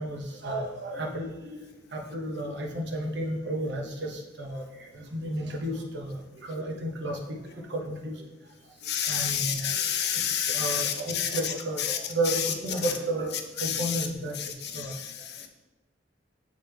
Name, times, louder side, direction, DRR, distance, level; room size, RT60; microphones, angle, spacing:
voice 1, 0.0-1.6 1.9-4.6 4.9-7.4 7.7-8.1 9.1-9.9 10.5-14.4 14.7-14.9, right 1 dB, 65° right, 1 dB, 1.0 m, -32 dB
voice 2, 8.8-11.5 11.8-12.0 12.3-12.5 12.8-12.9 13.6-14.1 14.4-15.5, left 9 dB, 60° left, 5 dB, 0.7 m, -29 dB
7.1 x 3.5 x 4.5 m, 1.1 s
head